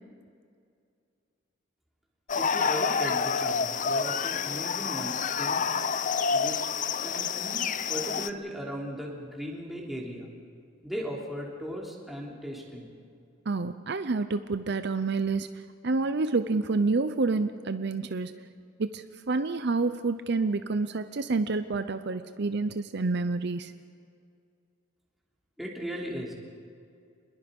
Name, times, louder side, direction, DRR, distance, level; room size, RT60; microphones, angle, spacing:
sound 1, 2.3-8.3, left 6 dB, 40° left, 0.6 m, -28 dB
voice 1, 2.3-5.6 6.3-6.7 7.0-10.3 10.8-12.9 25.6-26.3, equal, ahead, -3 dB, 3.3 m, -37 dB
voice 2, 13.5-18.3 18.8-23.7, right 3 dB, 55° right, 10 dB, 0.6 m, -28 dB
27.0 x 21.0 x 5.4 m, 2.3 s
head